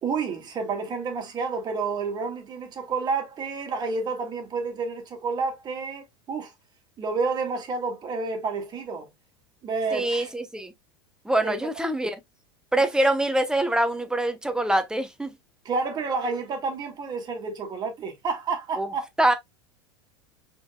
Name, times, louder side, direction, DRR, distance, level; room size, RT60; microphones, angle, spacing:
voice 1, 0.0-6.5 7.0-9.1 9.6-10.3 11.4-11.6 15.7-19.1, right 4 dB, 35° right, 1.9 m, -30 dB
voice 2, 9.9-10.7 11.2-12.2 12.7-15.3 18.8-18.9 19.2-19.3, right 1 dB, 5° right, 0.9 m, -24 dB
5.0 x 3.8 x 2.2 m
hypercardioid pair, 100°, 13 cm